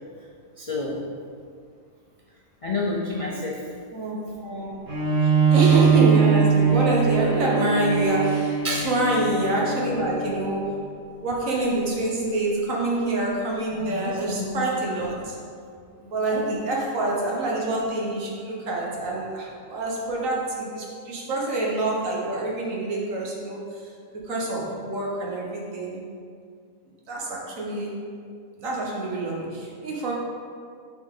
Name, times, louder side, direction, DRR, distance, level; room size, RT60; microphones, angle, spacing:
voice 1, 0.6-1.0 2.6-3.6 8.6-8.9 13.8-14.7 16.3-16.4, left 2 dB, 50° left, -4 dB, 0.4 m, -29 dB
voice 2, 3.9-4.8 5.2-10.9 11.2-15.4 16.0-23.9 24.2-26.1 27.1-28.1 28.6-30.1, right 2 dB, 70° right, -3 dB, 1.5 m, -26 dB
Bowed string instrument, 4.9-10.5, right 6 dB, 50° right, 1.5 m, -21 dB
7.9 x 4.1 x 3.7 m, 2.2 s
omnidirectional pair, 1.4 m